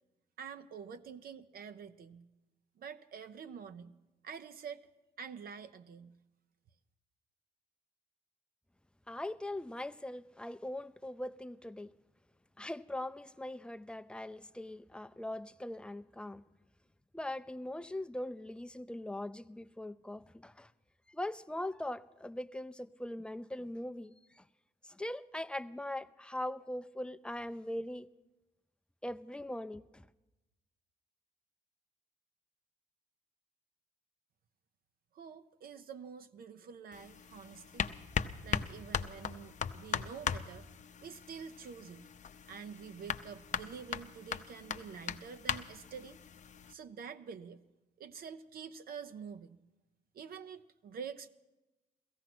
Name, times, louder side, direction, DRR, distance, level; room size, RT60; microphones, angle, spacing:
voice 1, 0.4-2.3 2.8-3.9 4.2-4.9 5.2-6.2 35.1-37.9 38.4-40.7 41.0-42.0 42.5-46.2 46.7-47.6 48.0-49.6 50.1-51.3, right 6 dB, 60° right, 0.7 m, -47 dB
voice 2, 9.1-11.9 12.6-16.4 17.1-20.7 21.1-24.4 24.8-28.1 29.0-30.1, left 1 dB, 5° left, 0.5 m, -41 dB
sound 1, 36.9-46.7, left 7 dB, 45° left, 0.7 m, -39 dB
16.0 x 15.0 x 6.0 m
cardioid pair, 80°, 17 cm